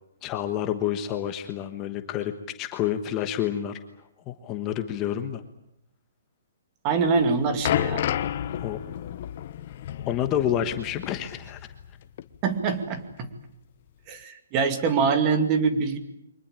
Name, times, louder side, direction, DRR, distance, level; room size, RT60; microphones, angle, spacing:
voice 1, 0.2-2.3 2.6-3.8 4.3-5.4 8.6-8.8 10.1-11.7, left 10 dB, 20° left, 8 dB, 1.3 m, -28 dB
voice 2, 6.8-8.0 12.4-13.3 14.1-16.0, right 5 dB, 25° right, 8 dB, 2.4 m, -24 dB
sound 1, 7.0-11.9 12.2-12.4 13.1-13.2, left 11 dB, 40° left, 1.0 m, -31 dB
24.0 x 20.0 x 8.9 m, 0.77 s
hypercardioid pair, 165°, 0 cm